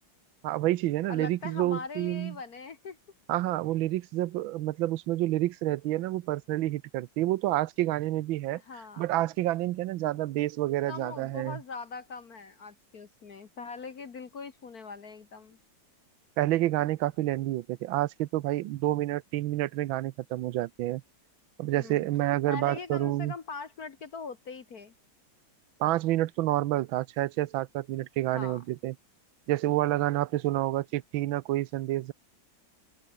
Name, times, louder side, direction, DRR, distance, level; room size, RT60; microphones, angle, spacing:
voice 1, 0.4-2.3 3.3-8.6 9.0-11.6 16.4-21.0 21.6-23.3 25.8-28.9 29.5-32.1, right 15 dB, 85° right, 1.5 m, -28 dB
voice 2, 1.1-3.0 8.6-9.1 10.9-15.6 21.8-22.1 22.5-24.9 28.3-28.6, left 4 dB, 50° left, 1.9 m, -41 dB
open air
omnidirectional pair, 2.1 m